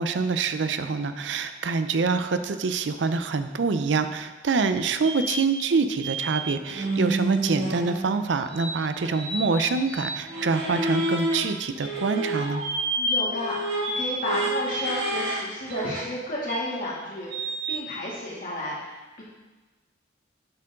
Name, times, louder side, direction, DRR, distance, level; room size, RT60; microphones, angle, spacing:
voice 1, 0.0-12.6, right 4 dB, 85° right, 10 dB, 0.5 m, -26 dB
sound 1, 5.0-5.2 6.0-6.4 6.7-8.2 8.5-11.3 11.8-15.4 15.7-16.0 16.5-16.6 17.3-17.8, right 1 dB, 65° right, 2.2 m, -29 dB
voice 2, 13.0-19.2, left 1 dB, 50° left, -6 dB, 2.3 m, -32 dB
7.7 x 6.7 x 3.7 m, 1.2 s
head